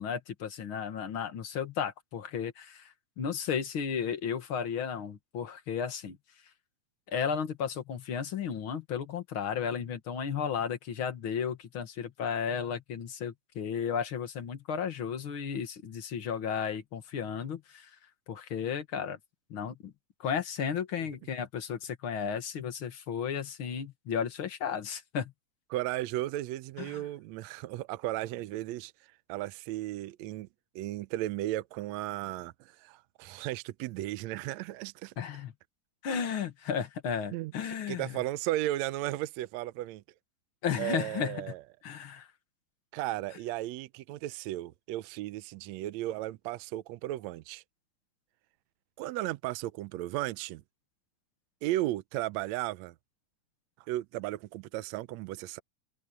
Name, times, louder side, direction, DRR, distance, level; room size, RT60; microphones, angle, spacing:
voice 1, 0.0-6.2 7.1-17.9 18.3-19.2 19.5-19.9 20.2-25.3 26.8-27.0 35.2-35.5 36.0-38.2 40.6-41.4 41.8-42.3, left 7 dB, 50° left, 2.1 m, -34 dB
voice 2, 25.7-28.9 29.3-30.5 30.8-35.1 37.3-37.5 37.9-40.0 40.8-41.6 42.9-47.6 49.0-50.6 51.6-53.0 53.9-55.6, right 15 dB, 80° right, 1.8 m, -35 dB
omnidirectional pair, 3.4 m